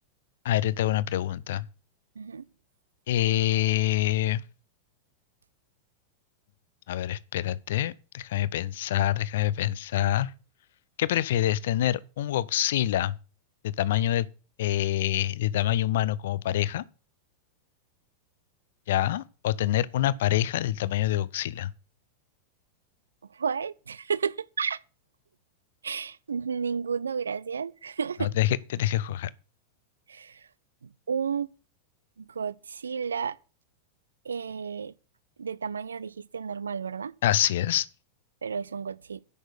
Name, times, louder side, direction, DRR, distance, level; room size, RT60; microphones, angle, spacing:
voice 1, 0.4-1.7 3.1-4.4 6.9-10.3 11.0-13.2 13.6-14.3 14.6-16.8 18.9-21.7 28.2-29.3 37.2-37.9, left 13 dB, 55° left, 0.5 m, -26 dB
voice 2, 23.3-24.8 25.8-28.3 30.1-30.5 30.8-31.5 32.2-33.4 34.3-34.9 35.4-37.1 38.4-39.2, right 6 dB, 70° right, 0.4 m, -32 dB
10.0 x 6.3 x 6.6 m
figure-of-eight pair, 90°, 0 cm